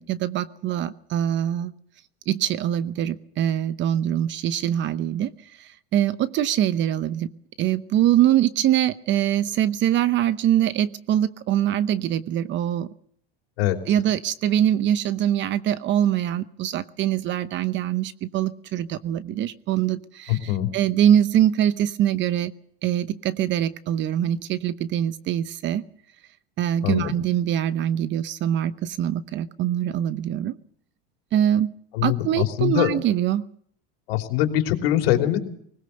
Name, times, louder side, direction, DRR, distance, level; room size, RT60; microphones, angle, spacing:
voice 1, 0.0-1.7 2.3-5.3 5.6-7.3 7.6-12.9 13.9-22.5 22.8-25.8 26.6-30.5 31.3-31.7 32.0-33.4, right 11 dB, 40° right, 14 dB, 0.9 m, -23 dB
voice 2, 20.3-20.7 26.8-27.1 31.9-32.9 34.1-35.4, left 13 dB, 80° left, 4 dB, 3.5 m, -22 dB
20.0 x 19.5 x 6.7 m, 0.63 s
supercardioid pair, 130°, 30 cm